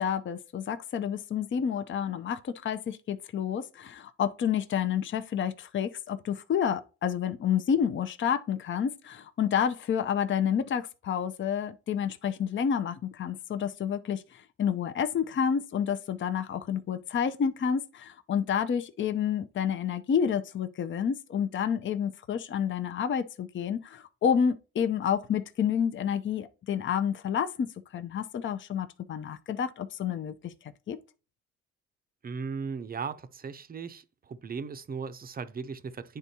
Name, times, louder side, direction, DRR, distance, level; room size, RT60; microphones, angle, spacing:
voice 1, 0.0-27.7 27.9-30.5 30.9-31.0, left 8 dB, 40° left, 0.5 m, -29 dB
voice 2, 32.2-34.0 34.3-36.2, right 5 dB, 30° right, 0.5 m, -37 dB
9.7 x 3.5 x 2.8 m
cardioid pair, 90°, 30 cm